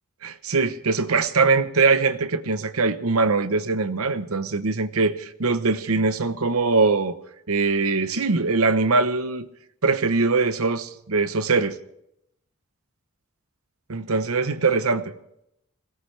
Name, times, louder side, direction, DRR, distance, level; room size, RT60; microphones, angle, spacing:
voice 1, 0.2-7.2 7.5-9.5 9.8-11.8 13.9-15.2, right 4 dB, 85° right, 0.9 m, -22 dB
21.0 x 17.5 x 3.3 m
head